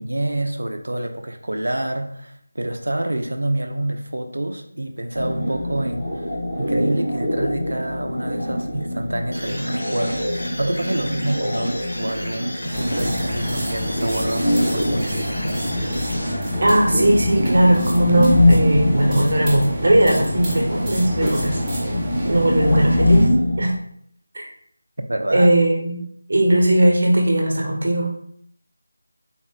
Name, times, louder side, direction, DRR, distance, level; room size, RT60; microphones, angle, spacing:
voice 1, 0.0-6.2 6.6-15.6 25.1-25.5, right 1 dB, 85° right, 6 dB, 0.5 m, -27 dB
sound 1, 5.1-23.6, left 1 dB, 20° left, 1.0 m, -23 dB
sound 2, 9.3-16.8, equal, 70° left, 1.1 m, -35 dB
sound 3, 12.7-23.3, equal, 10° right, 0.7 m, -28 dB
voice 2, 16.6-21.6 22.2-23.3 23.6-23.7 25.3-26.0 26.3-28.1, right 1 dB, 55° right, 0 dB, 1.0 m, -18 dB
3.8 x 2.0 x 3.6 m, 0.66 s
figure-of-eight pair, 170°, 0 cm